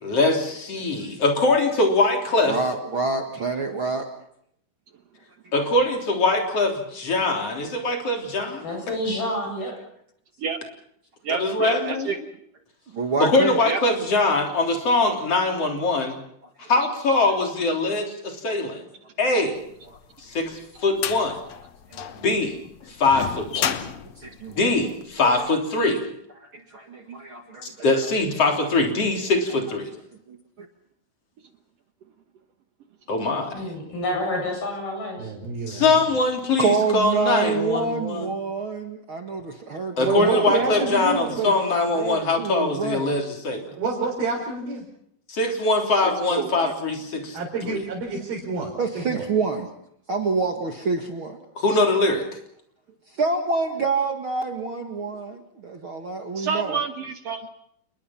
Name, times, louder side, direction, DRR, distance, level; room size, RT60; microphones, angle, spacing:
voice 1, 0.0-2.6 5.5-8.7 11.3-12.1 13.2-16.2 16.7-18.8 19.2-19.6 20.2-21.4 22.1-22.6 22.9-23.7 24.5-26.1 27.6-29.9 33.1-33.6 35.7-38.4 40.0-43.7 45.3-47.4 47.7-47.8 51.6-52.3, left 2 dB, 40° left, 2 dB, 4.3 m, -22 dB
voice 2, 2.4-4.1 12.9-13.6 22.0-22.1 23.8-24.8 25.2-25.4 26.4-27.7 30.3-30.7 36.6-41.2 41.5-41.7 42.0-43.2 48.8-49.7 50.1-51.4 53.2-56.8, right 4 dB, 45° right, 4 dB, 2.0 m, -27 dB
voice 3, 8.6-9.7 33.5-35.3, left 1 dB, 80° left, 2 dB, 10.0 m, -28 dB
voice 4, 11.2-12.2 13.7-13.8 46.0-46.7 56.3-57.5, right 6 dB, 65° right, 7 dB, 1.6 m, -28 dB
sound 1, 19.9-25.3, left 9 dB, 60° left, 2.0 m, -32 dB
voice 5, 35.2-36.0 40.0-41.5 43.8-44.8 47.3-49.3, right 4 dB, 80° right, -3 dB, 6.2 m, -28 dB
29.0 x 20.5 x 5.9 m, 0.72 s
omnidirectional pair, 4.3 m